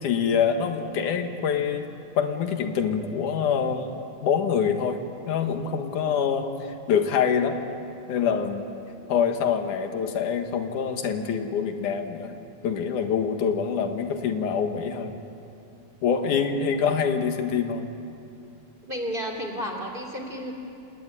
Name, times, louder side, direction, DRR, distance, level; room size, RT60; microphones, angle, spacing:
voice 1, 0.0-1.9 2.2-4.0 4.2-5.0 5.3-6.5 6.9-7.6 8.1-8.6 9.1-12.3 12.6-15.2 16.0-17.9, left 7 dB, 85° left, 6 dB, 3.0 m, -25 dB
voice 2, 18.9-20.5, equal, 15° right, 3 dB, 2.8 m, -32 dB
27.5 x 19.0 x 9.9 m, 2.7 s
omnidirectional pair, 3.4 m